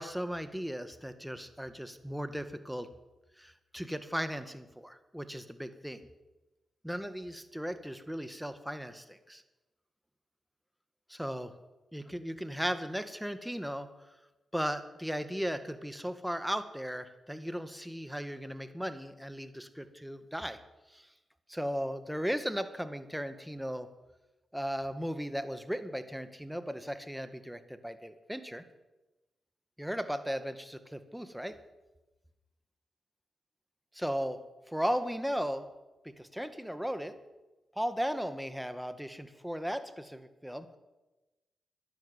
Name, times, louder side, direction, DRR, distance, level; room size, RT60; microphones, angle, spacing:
voice 1, 0.0-2.9 3.4-6.0 6.8-9.4 11.1-11.5 11.9-13.9 14.5-20.6 20.9-21.1 21.5-23.9 24.5-28.6 29.8-31.6 33.9-34.4 34.7-35.6 36.0-37.2 37.8-40.7, equal, 5° right, 10 dB, 1.8 m, -36 dB
13.0 x 10.5 x 9.2 m, 1.1 s
supercardioid pair, 45°, 0 cm